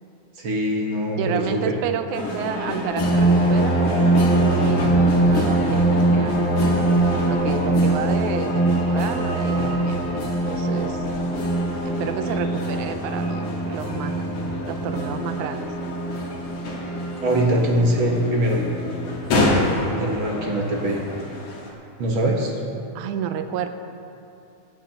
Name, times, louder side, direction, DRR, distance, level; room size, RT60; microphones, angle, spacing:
voice 1, 0.4-1.6 17.2-18.6 19.9-21.0 22.0-22.6, right 1 dB, 55° right, -1 dB, 1.6 m, -22 dB
voice 2, 1.2-6.6 7.3-10.0 10.5-11.1 11.9-14.3 14.7-15.7 23.0-23.7, right 8 dB, 80° right, 8 dB, 2.0 m, -30 dB
sound 1, 2.1-21.7, left 2 dB, 65° left, 3.0 m, -29 dB
sound 2, 3.0-20.0 20.7-20.8 21.2-21.4, right 2 dB, 20° left, 0.5 m, -23 dB
sound 3, 11.5-20.5, left 2 dB, 90° left, 2.7 m, -39 dB
23.5 x 9.2 x 2.9 m, 2.7 s
omnidirectional pair, 3.6 m